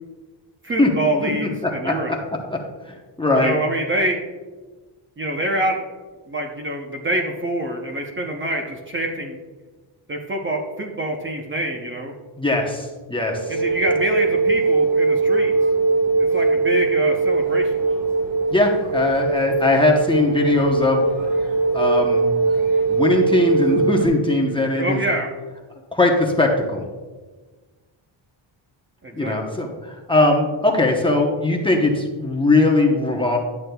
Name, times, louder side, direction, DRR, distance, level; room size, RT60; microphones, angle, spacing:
voice 1, 0.6-2.2 3.3-4.2 5.2-5.9 6.3-9.4 10.1-12.1 13.5-15.5 16.2-17.7 24.8-25.3 29.0-29.5, right 1 dB, 25° right, 1 dB, 0.7 m, -26 dB
voice 2, 1.2-2.2 2.5-2.6 2.9-3.6 12.4-13.4 18.5-21.1 21.7-22.3 22.9-25.0 25.9-26.8 29.1-33.4, left 2 dB, 10° left, 0 dB, 0.8 m, -20 dB
sound 1, 13.3-24.1, right 3 dB, 85° right, 1.7 m, -21 dB
10.5 x 8.3 x 2.3 m, 1.3 s
wide cardioid pair, 150°, 48 cm